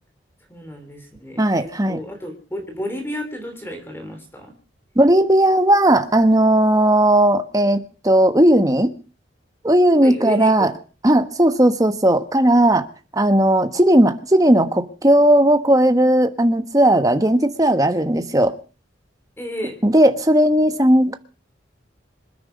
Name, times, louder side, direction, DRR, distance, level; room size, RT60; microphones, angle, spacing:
voice 1, 0.5-4.5 10.0-10.7 19.4-19.8, equal, 10° left, 3.4 m, -32 dB
voice 2, 1.4-2.0 5.0-8.9 9.6-10.7 11.0-12.9 13.1-18.5 19.8-21.2, right 1 dB, 20° right, 1.3 m, -16 dB
26.5 x 9.7 x 5.2 m
head